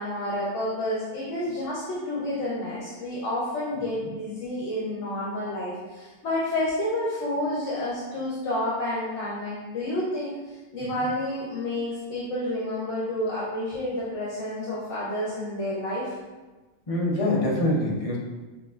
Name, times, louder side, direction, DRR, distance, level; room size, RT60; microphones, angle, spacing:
voice 1, 0.0-16.2, left 1 dB, 75° left, -7 dB, 1.2 m, -30 dB
voice 2, 16.9-18.2, left 1 dB, 35° left, -4 dB, 0.8 m, -24 dB
6.3 x 2.7 x 2.4 m, 1.2 s
omnidirectional pair, 1.2 m